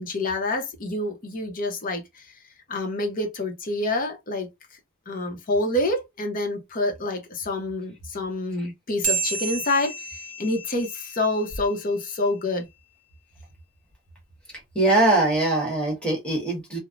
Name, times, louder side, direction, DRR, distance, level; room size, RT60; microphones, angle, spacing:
voice 1, 0.0-2.2 2.7-4.5 5.1-12.7, left 2 dB, 40° left, 0.7 m, -27 dB
sound 1, 9.0-11.9, right 5 dB, 40° right, 1.1 m, -31 dB
voice 2, 14.7-16.8, right 2 dB, 5° left, 1.3 m, -22 dB
3.1 x 2.0 x 2.4 m
head